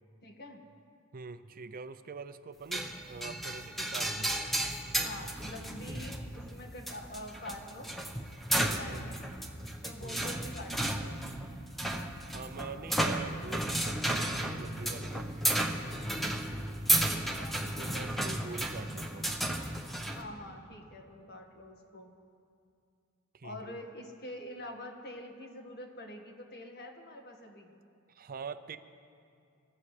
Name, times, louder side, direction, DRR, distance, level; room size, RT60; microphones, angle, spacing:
voice 1, 0.2-0.6 5.0-7.9 8.5-9.2 9.8-11.3 17.0-17.6 20.1-22.1 23.4-27.7, left 1 dB, 50° left, 2 dB, 1.7 m, -46 dB
voice 2, 1.1-4.4 8.6-9.1 10.0-10.3 12.3-15.9 17.8-19.3 23.3-23.7 28.1-28.8, right 4 dB, 40° right, 11 dB, 0.5 m, -44 dB
sound 1, 2.7-20.2, right 1 dB, ahead, 0.9 m, -33 dB
27.5 x 14.5 x 3.3 m, 2.4 s
head